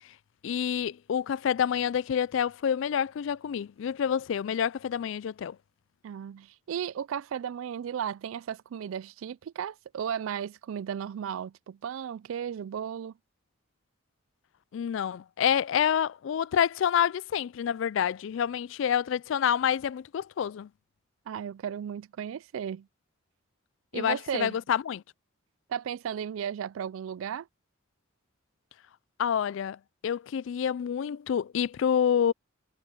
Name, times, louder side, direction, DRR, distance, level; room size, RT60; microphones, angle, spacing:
voice 1, 0.4-5.6 14.7-20.7 23.9-25.0 29.2-29.8 30.0-32.3, left 8 dB, 65° left, 0.3 m, -28 dB
voice 2, 6.0-13.1 21.3-22.9 23.9-24.6 25.7-27.5, right 8 dB, 75° right, 0.3 m, -35 dB
head